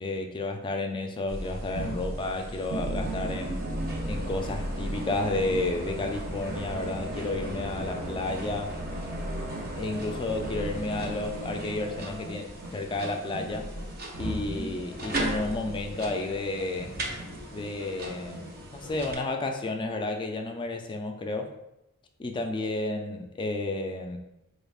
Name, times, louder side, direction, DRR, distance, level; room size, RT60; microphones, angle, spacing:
voice 1, 0.0-3.6 4.1-8.8 9.8-13.7 14.2-16.9 17.5-21.5 22.2-24.2, left 2 dB, 20° left, 4 dB, 0.3 m, -31 dB
sound 1, 1.3-19.1, right 1 dB, 45° right, 0.6 m, -35 dB
sound 2, 3.9-18.9, equal, 85° right, 1.5 m, -45 dB
4.1 x 3.4 x 2.3 m, 0.89 s
head